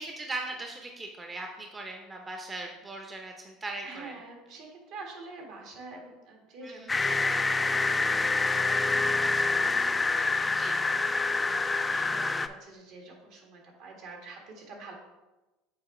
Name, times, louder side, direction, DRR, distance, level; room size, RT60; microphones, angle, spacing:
voice 1, 0.0-4.1 6.6-6.9 10.4-10.8, right 2 dB, 25° right, 3 dB, 0.8 m, -39 dB
voice 2, 3.8-8.6 8.9-14.9, right 3 dB, 65° right, 0 dB, 1.8 m, -47 dB
sound 1, 6.9-12.5, left 3 dB, 20° left, 0.4 m, -26 dB
7.3 x 4.6 x 3.2 m, 1.1 s
supercardioid pair, 90°, 0 cm